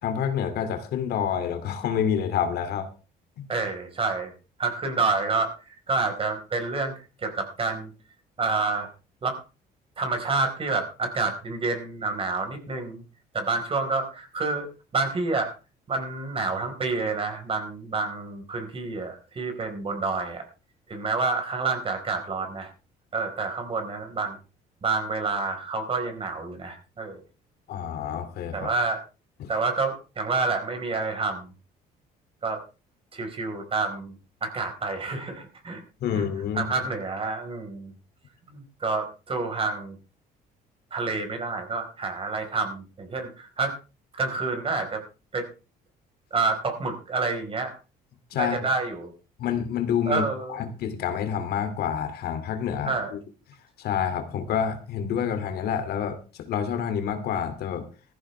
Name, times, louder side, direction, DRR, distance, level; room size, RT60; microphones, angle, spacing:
voice 1, 0.0-2.9 3.4-3.5 27.7-28.7 29.4-29.5 36.0-36.7 48.3-48.6 49.4-53.2 53.8-57.9, left 8 dB, 70° left, 8 dB, 2.5 m, -28 dB
voice 2, 3.5-4.3 4.6-6.9 7.2-7.9 8.4-8.9 9.2-9.4 10.0-13.0 13.3-14.7 14.9-15.5 15.9-20.4 20.9-22.7 23.1-24.4 24.8-27.2 28.5-29.0 29.5-31.5 32.4-32.6 33.1-34.1 34.4-35.8 36.1-36.2 36.5-37.9 38.5-40.0 40.9-43.8 44.1-45.0 45.3-45.5 46.3-47.7 48.3-49.1 50.1-50.6 52.8-53.1, right 3 dB, 35° right, 5 dB, 4.4 m, -28 dB
16.5 x 14.5 x 3.3 m, 0.32 s
cardioid pair, 110°, 17 cm